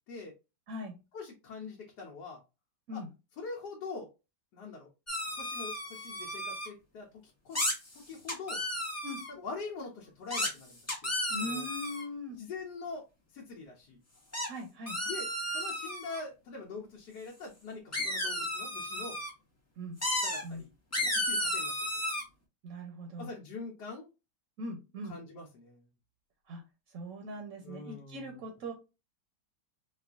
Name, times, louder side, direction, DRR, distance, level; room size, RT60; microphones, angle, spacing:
voice 1, 1.1-2.4 2.9-3.0 3.4-4.1 4.5-4.9 5.3-8.6 9.3-11.1 11.4-11.7 12.4-13.1 13.3-14.0 15.1-19.2 20.1-20.7 21.0-21.7 23.2-24.1 25.0-25.9 27.6-28.4, left 4 dB, 80° left, -1 dB, 1.3 m, -44 dB
sound 1, 5.1-6.7 7.5-7.7 8.3-9.3 10.3-10.5 10.9-12.1 14.3-14.5 14.9-16.2 17.9-19.3 20.0-20.4 20.9-22.2, left 1 dB, 20° left, 0.4 m, -33 dB
voice 2, 11.3-12.4 14.4-15.0 19.8-20.0 20.4-20.6 22.6-23.3 24.6-25.1 26.5-26.6 26.9-28.7, equal, 60° right, 2 dB, 1.1 m, -40 dB
4.4 x 2.3 x 2.4 m, 0.28 s
omnidirectional pair, 1.8 m